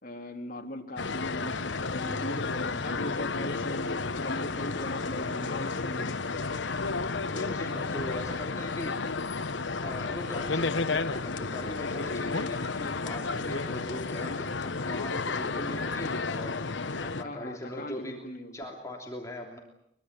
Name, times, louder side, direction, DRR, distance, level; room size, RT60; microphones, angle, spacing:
voice 1, 0.0-6.3 17.2-18.6, left 1 dB, 50° left, 3 dB, 3.3 m, -39 dB
sound 1, 1.0-17.2, left 3 dB, 70° left, 1.2 m, -32 dB
voice 2, 7.3-9.0 9.8-16.6 17.0-18.2 18.5-19.6, left 1 dB, 15° left, 1 dB, 3.2 m, -40 dB
24.0 x 23.0 x 8.4 m, 0.77 s
head